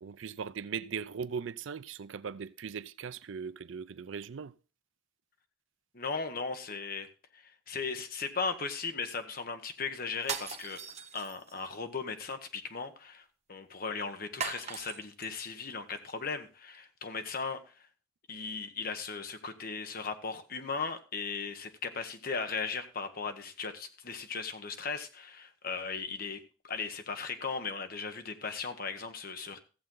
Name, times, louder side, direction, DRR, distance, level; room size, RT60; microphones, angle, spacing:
voice 1, 0.0-4.5, right 6 dB, 75° right, 0.5 m, -39 dB
voice 2, 5.9-7.1 7.3-10.8 11.1-17.6 18.3-26.4 26.6-29.6, left 5 dB, 50° left, 1.1 m, -37 dB
sound 1, 10.2-11.7 14.4-15.3, right 6 dB, 35° right, 0.9 m, -39 dB
14.5 x 7.5 x 3.8 m
head